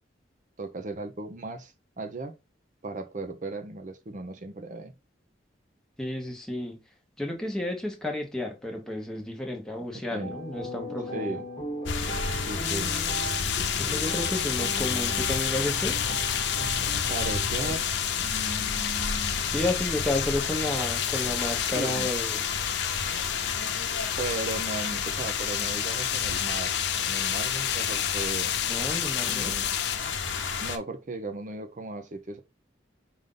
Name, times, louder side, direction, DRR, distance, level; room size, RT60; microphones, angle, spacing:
voice 1, 0.6-2.4 2.8-4.9 10.1-10.4 11.1-11.4 12.5-12.9 17.1-17.8 18.2-19.4 21.6-22.1 24.2-26.7 27.0-28.5 29.3-29.7 30.6-32.4, right 2 dB, 40° right, 0.6 m, -36 dB
voice 2, 6.0-6.8 7.2-11.4 13.8-16.0 19.5-22.5 28.7-29.6, left 1 dB, 5° left, 1.0 m, -32 dB
sound 1, 10.2-17.8, right 1 dB, 25° left, 1.1 m, -37 dB
sound 2, 11.8-30.8, left 5 dB, 80° left, 0.8 m, -31 dB
sound 3, 12.6-30.0, left 11 dB, 60° left, 0.5 m, -31 dB
5.1 x 2.7 x 3.7 m
head